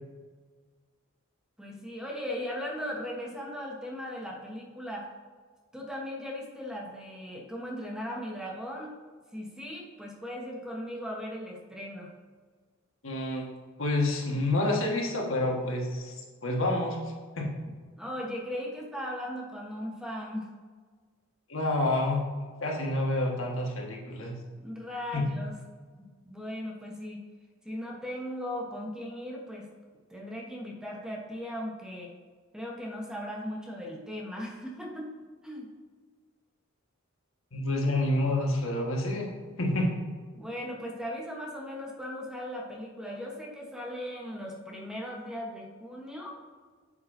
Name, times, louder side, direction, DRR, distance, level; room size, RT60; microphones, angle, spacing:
voice 1, 1.6-5.1 5.7-9.0 9.3-12.1 18.0-20.5 24.6-25.5 26.0-27.2 27.6-29.7 30.1-32.1 32.5-35.1 35.4-35.7 40.4-46.4, equal, 5° right, -1 dB, 1.0 m, -38 dB
voice 2, 13.0-13.5 13.8-17.0 17.4-17.5 21.5-22.2 22.6-24.3 25.1-25.3 37.5-39.3 39.6-39.9, left 1 dB, 75° left, 0 dB, 1.5 m, -28 dB
8.6 x 6.9 x 2.7 m, 1.5 s
head